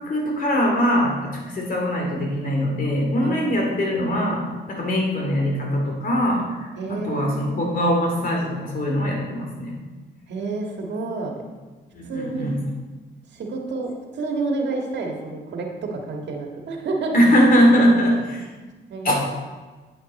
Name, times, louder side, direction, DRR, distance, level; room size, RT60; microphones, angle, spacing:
voice 1, 0.0-9.8 11.9-12.6 17.1-18.5 19.0-19.1, equal, 45° left, 0 dB, 2.5 m, -21 dB
voice 2, 3.2-3.8 6.8-7.7 10.3-11.4 12.1-12.5 13.3-17.1 18.6-19.1, right 3 dB, 65° right, 1 dB, 1.8 m, -29 dB
8.7 x 8.2 x 4.2 m, 1.3 s
cardioid pair, 90°, 20 cm